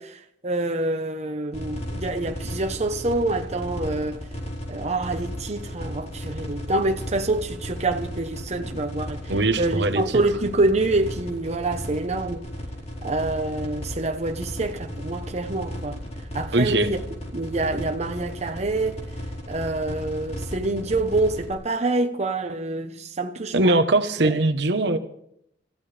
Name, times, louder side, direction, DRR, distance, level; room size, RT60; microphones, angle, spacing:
voice 1, 0.0-4.3 4.7-12.5 13.0-16.0 16.3-17.0 17.3-19.0 19.5-23.8 24.2-24.4, right 2 dB, 40° right, 1.0 m, -26 dB
sound 1, 1.5-21.5, equal, 40° left, 4.8 m, -35 dB
voice 2, 9.3-10.0 16.5-16.9 23.5-25.0, right 2 dB, 70° right, 1.1 m, -21 dB
28.5 x 14.5 x 3.4 m
head